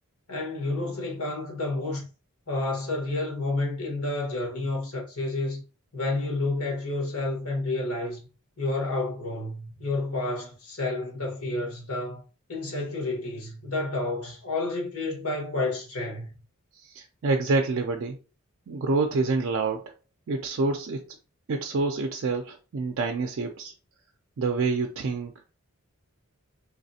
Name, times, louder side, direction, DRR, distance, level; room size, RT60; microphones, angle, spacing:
voice 1, 0.3-2.0 2.5-5.6 5.9-8.2 8.6-12.2 12.5-16.4, left 2 dB, 80° left, 1.4 m, -30 dB
voice 2, 16.8-18.2 18.7-19.9 20.3-21.1 21.5-23.7 24.4-25.3, right 3 dB, 60° right, 0.4 m, -27 dB
3.5 x 3.2 x 2.7 m
head